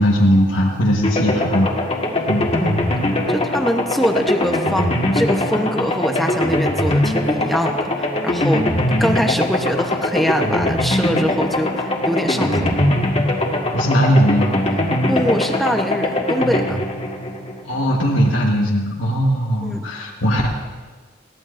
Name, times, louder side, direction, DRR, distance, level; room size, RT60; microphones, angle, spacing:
voice 1, 0.0-1.7 2.3-2.4 3.3-3.4 13.7-14.5 17.6-20.5, equal, 70° left, -3 dB, 1.4 m, -18 dB
sound 1, 1.0-18.0, left 1 dB, 30° left, 1.6 m, -21 dB
voice 2, 2.5-2.9 3.3-8.7 9.0-12.8 15.1-16.8 19.6-19.9, equal, ahead, 4 dB, 0.9 m, -23 dB
21.0 x 16.5 x 2.6 m, 1.4 s
head